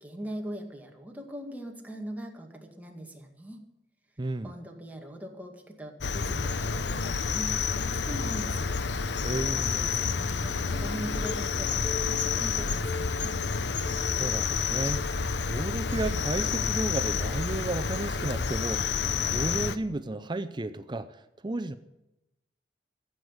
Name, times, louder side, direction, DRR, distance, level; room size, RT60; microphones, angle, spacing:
voice 1, 0.0-3.6 4.4-8.7 9.5-13.3, equal, 10° right, 2.1 m, -41 dB
voice 2, 4.2-4.5 9.2-9.7 14.2-15.1 15.5-18.8 19.2-21.8, right 2 dB, 25° right, 0.6 m, -33 dB
Cricket, 6.0-19.8, left 5 dB, 85° left, 0.8 m, -29 dB
Bass guitar, 10.7-14.6, left 5 dB, 5° left, 2.3 m, -51 dB
Telephone, 11.2-11.3 11.8-12.4 12.8-13.4 13.9-14.4 14.9-15.4 15.9-16.2 17.2-17.4, left 3 dB, 35° left, 1.1 m, -40 dB
15.0 x 8.0 x 9.7 m
head